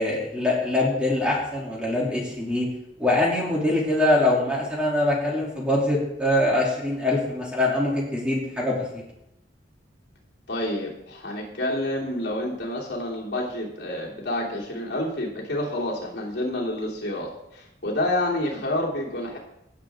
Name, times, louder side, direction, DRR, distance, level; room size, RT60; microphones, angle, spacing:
voice 1, 0.0-2.7 3.0-9.0, left 1 dB, 5° right, -4 dB, 2.7 m, -23 dB
voice 2, 10.5-19.4, left 1 dB, 65° left, -3 dB, 2.9 m, -28 dB
17.5 x 7.5 x 3.6 m, 0.83 s
head